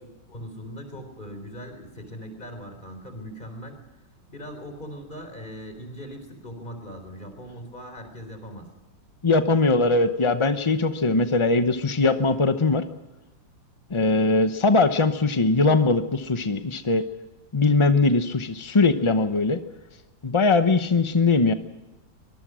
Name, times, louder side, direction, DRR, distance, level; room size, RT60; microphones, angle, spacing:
voice 1, 0.0-3.8 4.3-8.7, equal, 25° left, 7 dB, 4.1 m, -40 dB
voice 2, 9.2-12.8 13.9-17.0 17.5-19.6 20.2-21.5, left 3 dB, 45° left, 9 dB, 0.3 m, -21 dB
24.0 x 21.0 x 6.3 m, 1.0 s
omnidirectional pair, 2.1 m